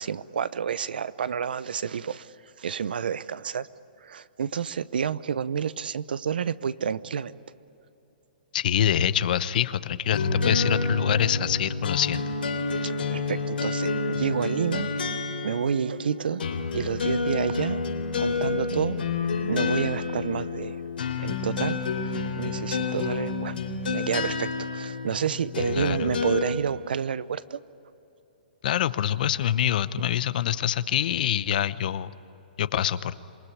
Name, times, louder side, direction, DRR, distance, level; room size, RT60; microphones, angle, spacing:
voice 1, 0.0-3.7 4.0-7.3 12.8-14.9 15.4-16.4 16.7-17.8 18.2-19.0 19.5-20.8 21.2-23.6 23.9-27.6, right 7 dB, 75° right, 17 dB, 0.8 m, -29 dB
voice 2, 8.5-12.3 12.8-12.9 25.7-26.1 28.6-32.1 32.6-33.2, left 10 dB, 60° left, 15 dB, 0.9 m, -25 dB
sound 1, 10.1-26.4, left 4 dB, 80° left, 3.7 m, -29 dB
27.5 x 20.0 x 9.8 m, 2.9 s
hypercardioid pair, 135°, 5 cm